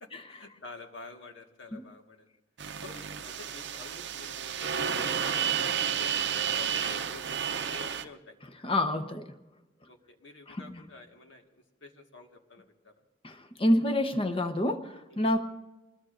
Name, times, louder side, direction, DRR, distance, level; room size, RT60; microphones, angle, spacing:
voice 1, 0.0-2.3 2.8-8.4 9.9-12.9 15.1-15.2, left 3 dB, 75° left, 4 dB, 1.7 m, -49 dB
sound 1, 2.6-8.1, right 8 dB, 65° right, 0.7 m, -31 dB
voice 2, 8.6-9.3 10.5-10.8 13.2-15.4, left 1 dB, 30° left, 8 dB, 1.0 m, -28 dB
26.5 x 20.0 x 2.6 m, 1.0 s
head